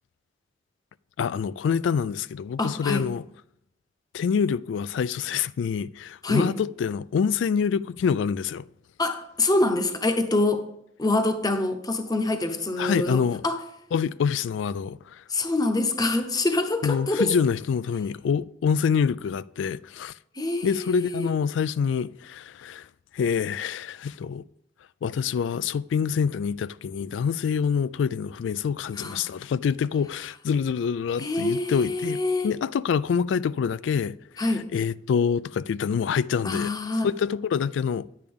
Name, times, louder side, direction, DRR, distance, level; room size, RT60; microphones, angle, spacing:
voice 1, 1.2-3.2 4.1-8.6 12.8-13.4 13.9-15.2 16.8-20.1 20.6-22.9 23.1-24.4 25.0-34.5 34.7-36.7 37.0-38.1, left 6 dB, 75° left, 0.3 m, -26 dB
voice 2, 2.6-3.0 6.2-6.5 9.0-10.6 11.0-13.6 15.3-17.4 20.3-21.3 29.0-29.3 31.2-32.5 34.4-34.6 36.4-37.1, left 2 dB, 20° left, 0.8 m, -25 dB
10.5 x 8.6 x 3.6 m
head